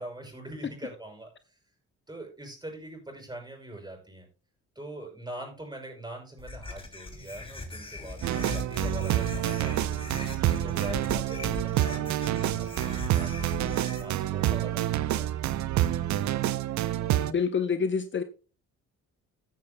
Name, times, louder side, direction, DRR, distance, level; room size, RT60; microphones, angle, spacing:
voice 1, 0.0-1.6 2.1-4.3 4.7-10.0 10.4-15.6, right 1 dB, 15° right, 6.0 m, -43 dB
sound 1, 6.4-14.0, left 2 dB, 20° left, 2.8 m, -39 dB
sound 2, 8.2-17.3, right 13 dB, 65° right, 0.6 m, -28 dB
voice 2, 17.3-18.2, left 6 dB, 40° left, 0.7 m, -27 dB
15.0 x 9.5 x 2.2 m
cardioid pair, 90°, 30 cm